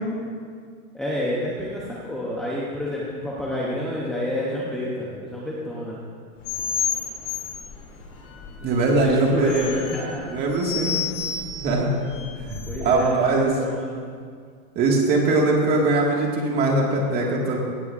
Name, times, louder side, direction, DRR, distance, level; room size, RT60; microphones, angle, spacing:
voice 1, 0.9-6.0 9.0-10.3 12.7-14.0, left 1 dB, ahead, -6 dB, 0.6 m, -29 dB
sound 1, 6.4-13.1, left 7 dB, 40° left, 2.5 m, -31 dB
voice 2, 8.6-9.7 10.3-10.9 11.6-11.9 12.5-13.5 14.8-17.6, right 3 dB, 20° right, -1 dB, 1.7 m, -21 dB
17.5 x 15.5 x 2.5 m, 2.1 s
supercardioid pair, 160°, 45 cm